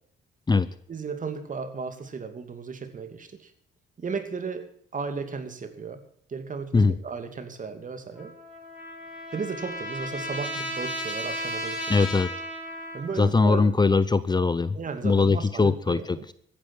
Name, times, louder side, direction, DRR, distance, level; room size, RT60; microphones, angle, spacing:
voice 1, 0.9-3.5 4.0-6.0 6.3-8.3 9.3-12.0 12.9-13.7 14.7-16.2, right 5 dB, 40° right, 9 dB, 2.7 m, -35 dB
Trumpet, 8.1-13.3, equal, 5° right, 7.5 m, -34 dB
voice 2, 11.9-12.3 13.2-14.8 15.0-16.3, left 4 dB, 20° left, 15 dB, 0.8 m, -21 dB
14.5 x 10.5 x 7.4 m, 0.66 s
cardioid pair, 90°, 20 cm